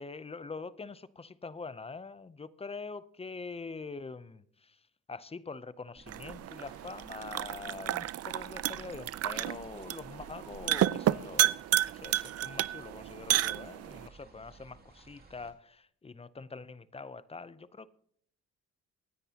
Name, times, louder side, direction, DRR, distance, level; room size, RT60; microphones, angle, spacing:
voice 1, 0.0-4.8 5.1-11.6 11.9-17.9, left 4 dB, 20° left, 0.6 m, -44 dB
sound 1, 5.9-15.5, right 3 dB, 30° right, 2.5 m, -55 dB
sound 2, 6.1-14.1, right 13 dB, 55° right, 0.5 m, -31 dB
24.5 x 9.8 x 2.8 m
cardioid pair, 90°, 30 cm